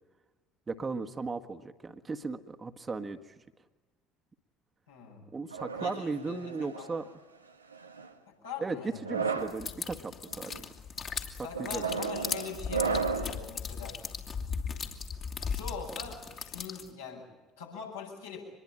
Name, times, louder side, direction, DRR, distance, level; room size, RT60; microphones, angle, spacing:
voice 1, 0.7-3.3 5.3-7.0 8.6-8.8 9.0-10.5 11.4-11.8, right 4 dB, 25° right, 7 dB, 1.6 m, -36 dB
voice 2, 4.9-5.2 5.8-7.0 8.4-9.0 11.4-14.0 15.4-17.3 17.6-18.4, left 6 dB, 80° left, -2 dB, 7.8 m, -43 dB
sound 1, 5.5-6.9 7.7-8.1 8.9-9.6 10.3-10.6 11.5-13.4, right 5 dB, 90° right, 1.2 m, -34 dB
sound 2, 9.5-16.9, left 6 dB, 40° left, 2.9 m, -37 dB
25.0 x 21.5 x 8.9 m, 1.2 s
figure-of-eight pair, 60°, 0 cm